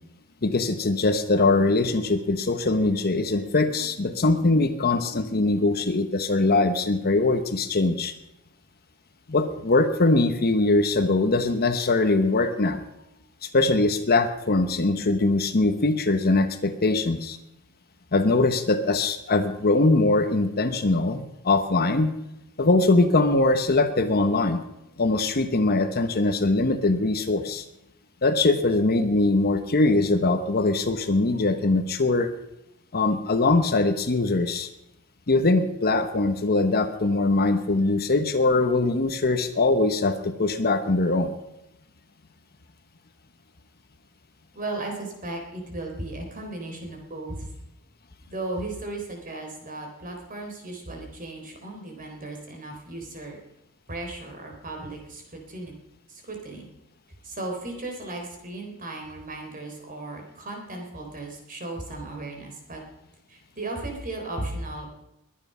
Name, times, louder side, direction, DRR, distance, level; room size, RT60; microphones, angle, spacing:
voice 1, 0.4-8.1 9.3-12.8 13.4-17.4 18.1-22.1 22.6-24.6 25.0-27.6 28.2-32.3 32.9-34.7 35.3-41.3, left 2 dB, 45° left, 9 dB, 1.1 m, -22 dB
voice 2, 44.5-47.5 48.3-53.4 53.9-55.7 56.1-56.7 57.2-62.8 63.3-64.9, right 2 dB, 40° right, 2 dB, 3.8 m, -36 dB
21.5 x 9.5 x 5.6 m, 0.88 s
head